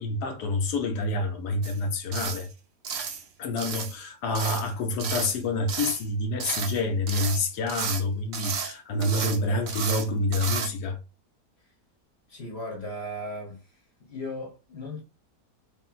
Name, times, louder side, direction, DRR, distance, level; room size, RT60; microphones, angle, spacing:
voice 1, 0.0-2.5 3.4-11.0, left 2 dB, 80° left, 1.2 m, -28 dB
sound 1, 1.6-1.8 2.1-2.5 2.8-3.2 3.6-4.0 4.3-4.7 5.0-5.4 5.7-6.0 6.4-6.8 7.1-8.0 8.3-8.7 9.0-9.4 9.7-10.1 10.3-10.7, right 6 dB, 85° right, 0.5 m, -32 dB
voice 2, 12.3-13.6 14.0-15.0, left 1 dB, 45° left, 1.0 m, -36 dB
3.1 x 2.5 x 2.3 m
omnidirectional pair, 1.7 m